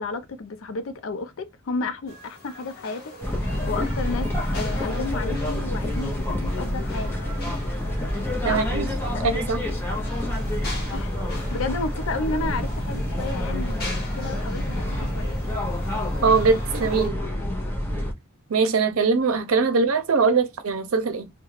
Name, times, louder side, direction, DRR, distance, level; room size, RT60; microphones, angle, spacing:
voice 1, 0.0-3.1 3.4-7.2 8.5-8.7 10.9-15.4, left 3 dB, 70° left, 0.5 m, -32 dB
sound 1, 2.1-17.1, left 2 dB, 50° left, 0.9 m, -41 dB
sound 2, 3.2-18.1, left 1 dB, 10° left, 0.7 m, -27 dB
voice 2, 8.4-8.9 9.2-9.6 16.2-17.2 18.5-21.3, right 4 dB, 80° right, 0.6 m, -21 dB
2.4 x 2.2 x 3.1 m
head